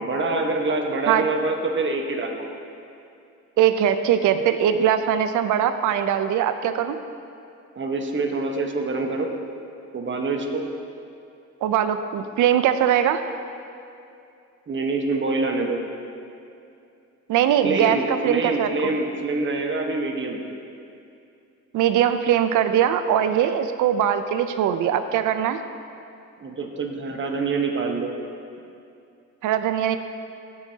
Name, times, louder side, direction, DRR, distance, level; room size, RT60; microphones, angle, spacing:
voice 1, 0.0-2.5 7.8-9.3 9.9-10.6 14.7-15.8 17.6-20.4 26.4-28.1, right 3 dB, 40° right, 2 dB, 1.2 m, -25 dB
voice 2, 3.6-7.0 11.6-13.2 17.3-19.0 21.7-25.6 29.4-30.0, right 9 dB, 80° right, 10 dB, 0.6 m, -21 dB
16.0 x 6.4 x 2.8 m, 2.6 s
cardioid pair, 90°, 30 cm